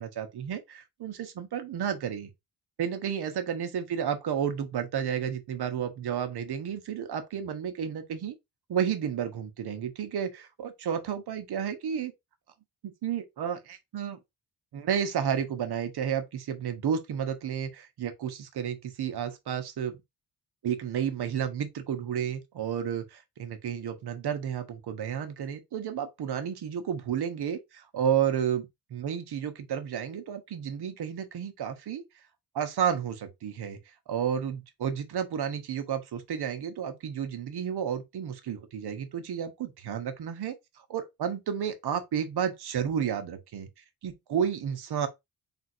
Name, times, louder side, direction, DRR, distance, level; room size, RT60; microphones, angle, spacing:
voice 1, 0.0-2.3 2.8-8.3 8.7-12.1 12.8-14.2 14.7-20.0 20.6-32.0 32.5-33.8 34.1-40.5 40.9-43.7 44.0-45.1, right 8 dB, 70° right, 1.0 m, -31 dB
3.8 x 2.6 x 4.2 m
wide cardioid pair, 150°, 41 cm